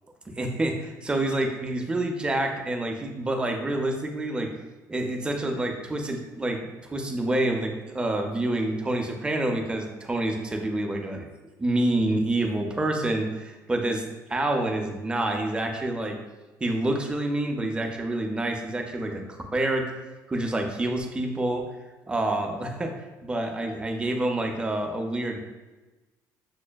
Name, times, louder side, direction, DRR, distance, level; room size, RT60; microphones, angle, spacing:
voice 1, 0.4-4.5 4.9-6.7 6.9-11.3 11.6-14.0 14.3-16.2 16.6-19.9 20.3-21.7 22.1-22.9 23.2-25.4, right 1 dB, 15° right, 3 dB, 0.4 m, -27 dB
6.2 x 2.1 x 2.2 m, 1.2 s
cardioid pair, 125°, 7 cm